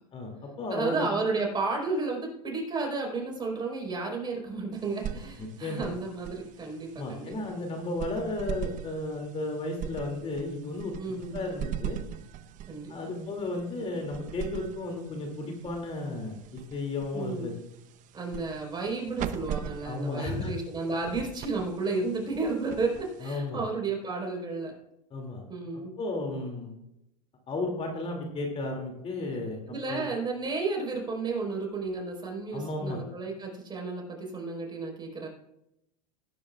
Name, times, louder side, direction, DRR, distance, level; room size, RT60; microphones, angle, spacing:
voice 1, 0.1-1.1 5.4-5.9 6.9-12.0 12.9-17.5 19.8-20.5 23.2-23.6 25.1-25.4 26.0-26.7 27.5-29.6 29.9-30.0 32.5-33.0, left 2 dB, 30° left, 2 dB, 2.6 m, -34 dB
voice 2, 0.7-7.3 11.0-11.4 12.7-13.1 17.1-17.6 18.1-24.7 25.5-26.0 29.7-35.3, right 3 dB, 20° right, 0 dB, 4.4 m, -32 dB
sound 1, 4.7-23.6, right 9 dB, 40° right, 0.8 m, -41 dB
19.5 x 10.0 x 2.4 m, 0.83 s
hypercardioid pair, 110°, 20 cm